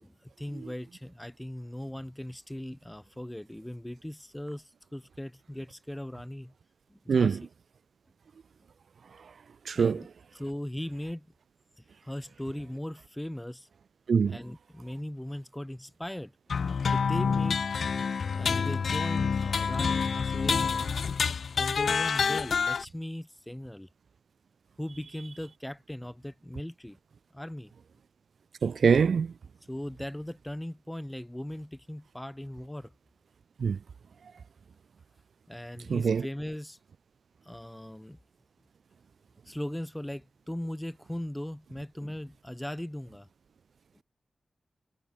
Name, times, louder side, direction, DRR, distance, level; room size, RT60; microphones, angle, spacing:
voice 1, 0.0-6.5 6.9-7.4 9.7-10.1 10.3-11.3 11.8-13.7 14.3-16.3 16.9-17.7 18.3-21.0 21.5-23.9 24.8-27.0 27.3-27.7 29.7-32.9 35.5-36.8 37.4-38.2 39.5-43.3, left 1 dB, 5° left, 2.1 m, -38 dB
voice 2, 9.7-10.0 14.1-14.4 28.6-29.3 33.6-33.8 35.9-36.2, right 6 dB, 80° right, 0.4 m, -24 dB
sound 1, 16.5-22.8, left 6 dB, 75° left, 0.7 m, -28 dB
wide cardioid pair, 115°, 0 cm